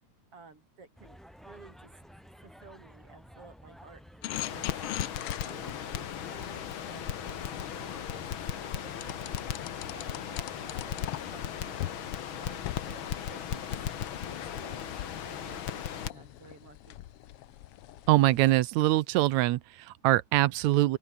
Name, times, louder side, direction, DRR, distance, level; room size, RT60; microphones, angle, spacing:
voice 1, 0.3-1.9 2.4-4.7 5.4-7.4 7.8-9.6 9.9-12.0 12.4-13.0 13.3-13.6 14.3-14.9 15.3-17.0, right 4 dB, 45° right, 5.3 m, -54 dB
sound 1, 1.0-15.6, equal, ahead, 0.8 m, -53 dB
sound 2, 4.2-8.1 9.0-11.5 11.8-12.0 12.5-18.6, left 14 dB, 75° left, 1.3 m, -42 dB
Crackle, 4.3-16.1, left 9 dB, 50° left, 1.7 m, -37 dB
voice 2, 18.1-21.0, right 16 dB, 75° right, 1.9 m, -24 dB
open air
omnidirectional pair, 3.5 m